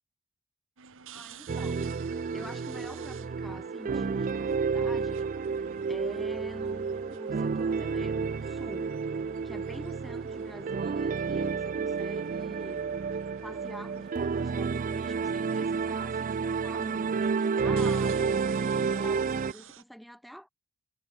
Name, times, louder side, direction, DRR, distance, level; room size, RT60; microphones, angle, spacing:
sound 1, 0.8-19.8, right 6 dB, 60° right, 1.9 m, -51 dB
voice 1, 1.1-2.0 2.3-9.0 9.4-12.9 13.4-18.5 18.9-20.5, equal, ahead, 3.7 m, -46 dB
sound 2, 1.5-19.5, right 5 dB, 35° right, 0.4 m, -30 dB
head